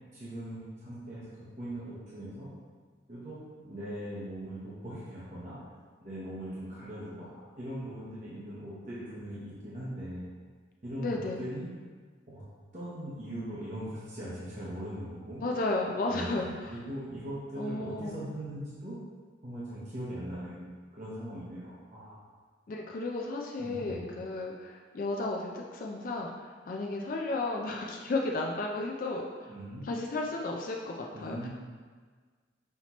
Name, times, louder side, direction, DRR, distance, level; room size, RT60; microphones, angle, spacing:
voice 1, 0.1-2.5 3.1-5.6 6.0-10.2 10.8-11.7 12.3-12.4 12.7-15.4 16.1-19.0 19.4-22.2 23.6-24.0 29.5-29.8 31.1-31.5, right 1 dB, 40° right, -10 dB, 0.9 m, -40 dB
voice 2, 11.0-11.4 15.4-16.7 17.5-18.2 22.7-29.5 29.8-31.5, left 2 dB, 45° left, -1 dB, 0.3 m, -34 dB
5.7 x 2.8 x 2.9 m, 1.5 s
head